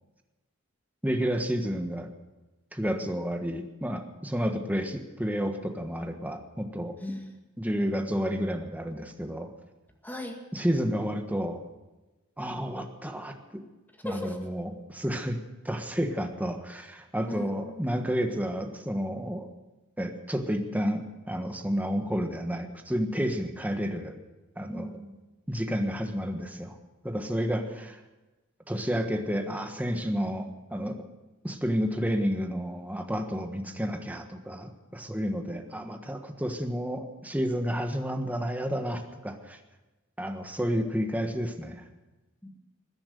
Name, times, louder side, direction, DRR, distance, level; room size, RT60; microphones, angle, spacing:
voice 1, 1.0-2.1 2.7-6.9 7.6-9.5 10.5-11.6 12.4-13.6 14.0-15.4 15.6-19.5 20.0-24.2 24.6-24.9 25.5-26.8 27.0-28.0 28.7-31.0 31.4-39.6 40.2-41.8, equal, 10° right, 5 dB, 1.4 m, -30 dB
voice 2, 7.0-7.3 10.0-10.4 14.0-14.4 17.3-17.9 24.7-25.1 27.4-27.7 42.4-42.6, left 1 dB, 10° left, 3 dB, 2.0 m, -39 dB
20.5 x 10.5 x 6.8 m, 1.1 s
head